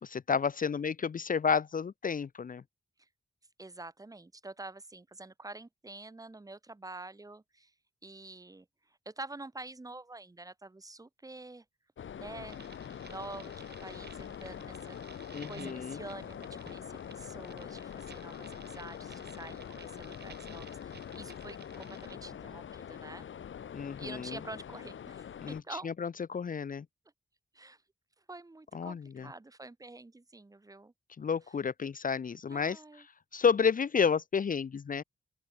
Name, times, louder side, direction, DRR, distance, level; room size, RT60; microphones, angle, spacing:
voice 1, 0.0-2.6 15.3-16.0 23.7-24.4 25.4-26.8 28.7-29.3 31.2-32.8 33.3-35.0, left 6 dB, 45° left, 1.0 m, -31 dB
voice 2, 3.6-7.7 8.0-8.7 9.0-11.6 12.2-12.6 13.0-15.0 15.4-23.3 24.0-25.9 27.5-27.8 28.3-30.9 32.5-33.1, right 2 dB, 15° right, 2.8 m, -47 dB
sound 1, 12.0-25.6, left 8 dB, 75° left, 1.4 m, -44 dB
sound 2, 12.5-22.2, right 6 dB, 55° right, 3.9 m, -54 dB
open air
wide cardioid pair, 180°, 20 cm